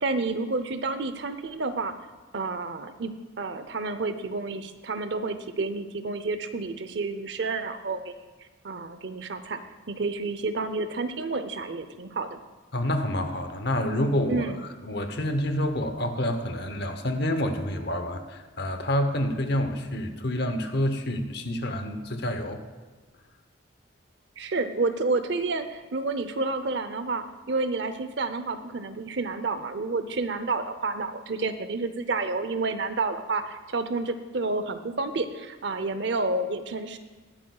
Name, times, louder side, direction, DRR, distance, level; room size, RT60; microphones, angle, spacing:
voice 1, 0.0-1.9 2.3-8.1 8.6-9.6 9.9-12.4 14.3-14.6 24.4-37.0, right 3 dB, 60° right, 10 dB, 0.6 m, -30 dB
voice 2, 12.7-14.4 14.8-22.6, left 1 dB, 55° left, 7 dB, 0.9 m, -28 dB
20.0 x 8.6 x 2.3 m, 1.3 s
head